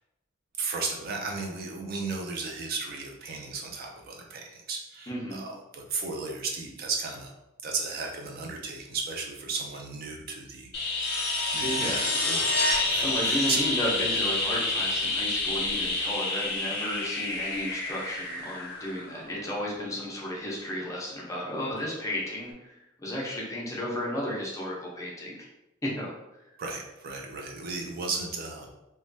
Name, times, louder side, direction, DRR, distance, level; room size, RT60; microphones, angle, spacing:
voice 1, 0.6-7.3 7.6-10.7 11.5-12.6 12.9-13.6 26.6-28.7, right 4 dB, 50° right, 1 dB, 0.4 m, -35 dB
voice 2, 5.1-5.4 11.6-12.1 13.0-22.7 23.0-25.5 25.8-26.1, equal, 15° left, -4 dB, 0.6 m, -33 dB
sound 1, 10.7-19.4 21.8-21.9, left 2 dB, 55° left, 0.7 m, -28 dB
3.1 x 2.2 x 2.6 m, 0.90 s
head